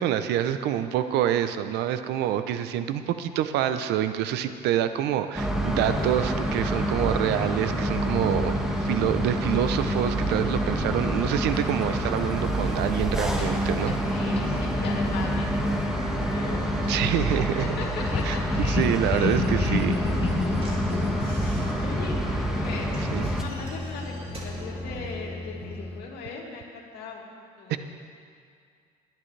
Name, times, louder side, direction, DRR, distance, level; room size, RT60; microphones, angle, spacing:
voice 1, 0.0-14.0 16.9-17.7 18.2-20.0 23.1-23.3 27.7-27.8, right 10 dB, 85° right, 10 dB, 0.7 m, -26 dB
sound 1, 5.3-23.4, equal, 5° right, 1.6 m, -27 dB
sound 2, 11.5-26.0, left 3 dB, 35° left, 1.2 m, -33 dB
voice 2, 14.1-18.4 21.4-22.2 22.6-27.2 27.6-27.8, left 4 dB, 70° left, -2 dB, 2.6 m, -39 dB
Slam / Knock, 19.4-25.2, right 2 dB, 35° right, 2.8 m, -45 dB
21.0 x 10.5 x 3.3 m, 2.2 s
cardioid pair, 110°, 17 cm